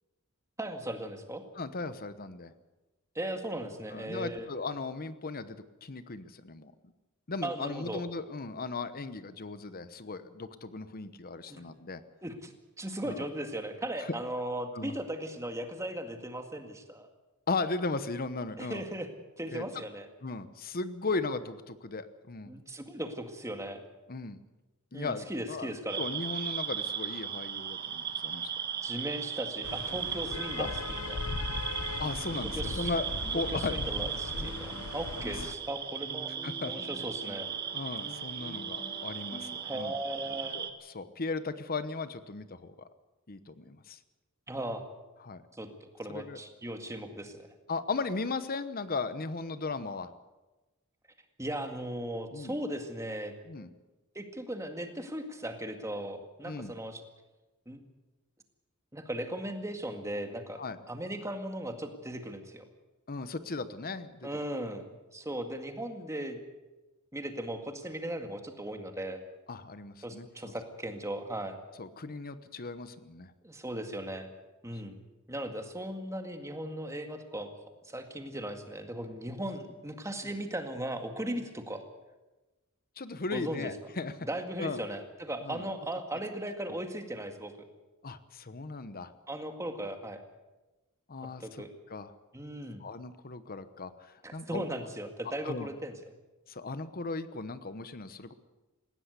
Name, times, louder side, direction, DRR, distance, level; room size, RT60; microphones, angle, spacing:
voice 1, 0.6-1.4 3.2-4.5 7.4-8.0 11.5-11.6 12.2-17.1 18.6-19.1 19.4-20.1 22.5-23.8 24.9-26.0 28.8-31.2 32.4-32.9 33.5-36.3 36.7-37.5 39.6-40.6 44.5-44.8 45.6-45.7 45.9-47.5 51.4-53.3 54.2-57.0 57.7-57.8 58.9-60.6 60.9-62.6 64.2-66.4 67.1-69.2 70.0-71.6 73.4-74.3 74.6-75.0 75.3-77.5 77.9-81.8 83.3-83.7 84.3-87.5 89.3-90.2 91.4-91.7 92.3-92.8 94.2-95.9, right 1 dB, 15° right, 5 dB, 2.0 m, -37 dB
voice 2, 1.5-2.5 3.9-6.9 7.3-12.0 13.0-13.2 14.0-14.1 14.7-14.9 17.5-18.9 19.5-19.8 20.2-22.5 24.1-24.4 24.9-28.5 30.6-30.7 32.0-33.7 35.4-35.5 36.4-36.7 37.7-39.9 40.5-40.7 40.9-42.7 43.3-44.0 45.2-45.4 46.1-46.4 47.7-50.1 52.3-52.6 53.4-53.7 56.4-56.7 60.6-60.8 63.1-64.3 69.5-70.5 71.8-73.3 80.2-80.4 83.0-84.1 84.6-84.8 85.4-85.7 88.0-89.1 91.1-92.1 92.8-94.6 95.4-95.7 96.5-98.3, left 3 dB, 45° left, 12 dB, 1.0 m, -37 dB
sound 1, 25.9-40.7, right 8 dB, 50° right, 1.6 m, -37 dB
sound 2, 29.6-35.5, left 3 dB, 80° left, 0.9 m, -38 dB
sound 3, 32.0-40.1, equal, 15° left, 3.0 m, -48 dB
19.5 x 16.5 x 8.2 m, 1.1 s
head